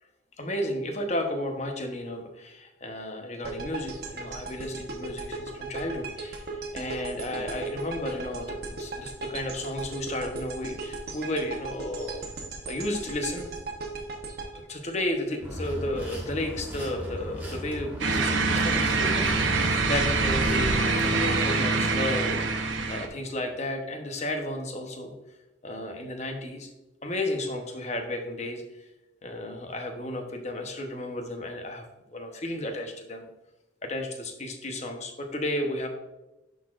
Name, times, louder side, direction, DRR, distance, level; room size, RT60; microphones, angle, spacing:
voice 1, 0.4-6.5 6.7-12.2 12.7-13.5 14.5-22.4 22.9-25.1 25.6-26.7 27.0-28.6 29.2-31.8 32.1-33.3 33.8-35.9, left 1 dB, 35° left, 4 dB, 0.8 m, -33 dB
sound 1, 3.4-15.6, right 3 dB, 55° right, 0.9 m, -37 dB
sound 2, 15.4-21.4, equal, 10° right, 1.5 m, -37 dB
sound 3, 18.0-23.1, right 3 dB, 80° right, 0.8 m, -25 dB
11.0 x 4.0 x 2.4 m, 0.98 s
head